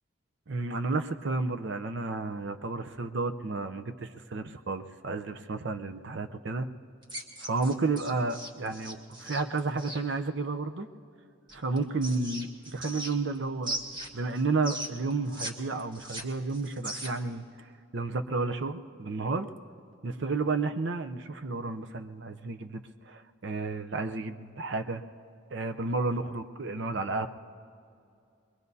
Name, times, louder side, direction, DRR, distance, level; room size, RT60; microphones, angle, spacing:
voice 1, 0.5-6.7 7.4-10.9 11.5-13.8 14.1-19.5 20.0-25.0 25.5-27.3, right 3 dB, 60° right, 8 dB, 0.6 m, -32 dB
sound 1, 7.0-10.0 11.5-13.4 13.6-15.5 15.8-17.3, right 1 dB, 20° right, 1.2 m, -38 dB
23.0 x 22.5 x 2.7 m, 2.5 s
head